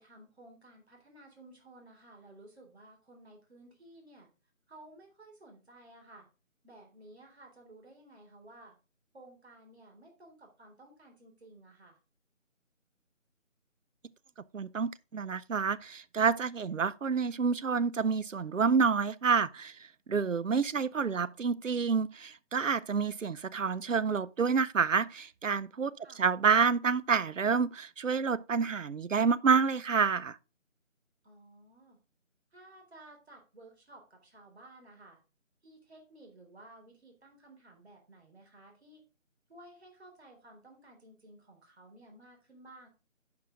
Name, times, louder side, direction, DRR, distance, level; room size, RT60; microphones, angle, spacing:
voice 1, 0.0-4.3 4.7-6.3 6.6-8.8 9.1-12.0 26.0-26.2 31.2-32.0 32.5-35.2 35.6-39.0 39.5-42.9, right 1 dB, 50° right, 3.6 m, -55 dB
voice 2, 14.5-19.7 20.1-30.4, right 5 dB, 70° right, 0.7 m, -28 dB
10.5 x 5.7 x 3.7 m
figure-of-eight pair, 165°, 40 cm